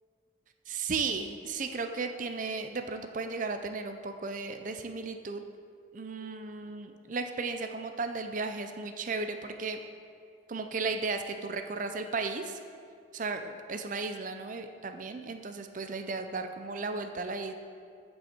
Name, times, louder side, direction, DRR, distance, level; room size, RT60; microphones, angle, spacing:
voice 1, 0.7-5.4 5.9-9.8 10.5-12.6 13.1-17.5, right 4 dB, 40° right, 7 dB, 0.5 m, -35 dB
15.0 x 5.5 x 4.4 m, 2.3 s
head